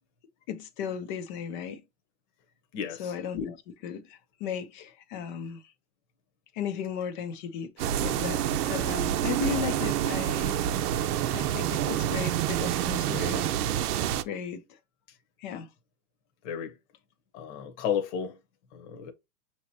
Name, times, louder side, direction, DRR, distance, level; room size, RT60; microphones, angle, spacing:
voice 1, 0.5-1.8 3.0-5.6 6.5-7.7 8.0-8.4 8.7-10.6 11.3-13.6 14.2-14.8 15.4-15.7, left 7 dB, 35° left, 0.6 m, -35 dB
voice 2, 2.7-3.1 12.4-12.5 16.4-16.8 17.3-18.4 18.7-19.1, left 8 dB, 50° left, 1.0 m, -33 dB
sound 1, 7.8-13.6, right 5 dB, 15° right, 0.4 m, -47 dB
sound 2, 7.8-14.2, right 11 dB, 85° right, 0.7 m, -28 dB
6.2 x 3.0 x 2.7 m
supercardioid pair, 170°, 45 cm